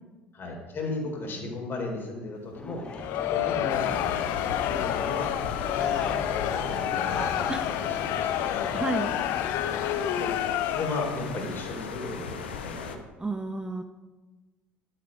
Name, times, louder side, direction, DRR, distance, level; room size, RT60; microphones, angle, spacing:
voice 1, 0.3-2.9 3.3-4.3 4.6-5.3 5.7-8.7 10.2-13.0, left 2 dB, 40° left, 1 dB, 3.8 m, -36 dB
sound 1, 2.5-10.3, left 3 dB, 20° left, 0.7 m, -38 dB
Crowd, 2.9-11.4, left 12 dB, 55° left, 0.6 m, -29 dB
sound 2, 3.7-13.0, left 6 dB, 75° left, 1.0 m, -38 dB
voice 2, 8.7-9.1 13.2-13.8, right 2 dB, 15° right, 7 dB, 0.8 m, -31 dB
12.0 x 9.2 x 5.1 m, 1.2 s
figure-of-eight pair, 60°, 6 cm